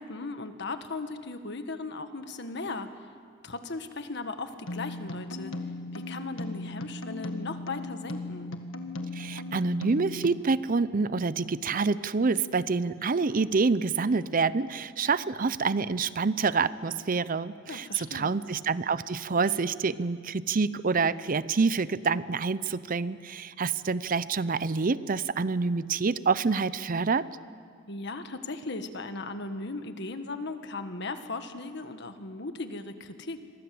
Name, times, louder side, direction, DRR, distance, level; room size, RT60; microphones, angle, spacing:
voice 1, 0.0-2.9 3.4-5.5 5.9-8.5 17.7-18.4 27.9-33.4, left 3 dB, 60° left, 8 dB, 1.6 m, -37 dB
sound 1, 4.7-10.4, left 2 dB, 90° left, 1.8 m, -37 dB
voice 2, 9.1-27.3, right 4 dB, 45° right, 16 dB, 0.6 m, -27 dB
27.5 x 23.5 x 7.8 m, 2.1 s
head